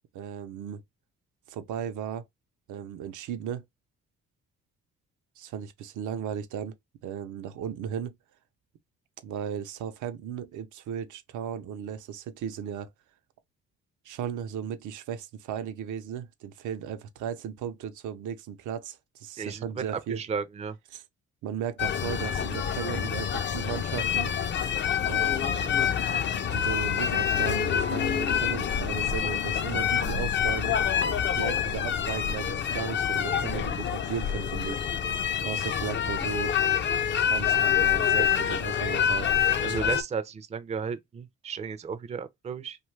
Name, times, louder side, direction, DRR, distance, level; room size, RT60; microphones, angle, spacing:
voice 1, 0.1-0.8 1.5-2.2 2.7-3.6 5.4-6.7 7.0-8.1 9.2-12.9 14.1-20.2 20.9-21.0 21.4-24.3 25.0-26.0 26.5-30.8 31.3-34.8 35.4-36.7 37.3-39.3, right 8 dB, 80° right, 0.6 m, -36 dB
voice 2, 20.1-20.8 39.6-42.8, right 6 dB, 20° right, 0.4 m, -34 dB
sound 1, 21.8-40.0, left 8 dB, 40° left, 0.4 m, -27 dB
2.7 x 2.4 x 3.1 m
cardioid pair, 90°, 30 cm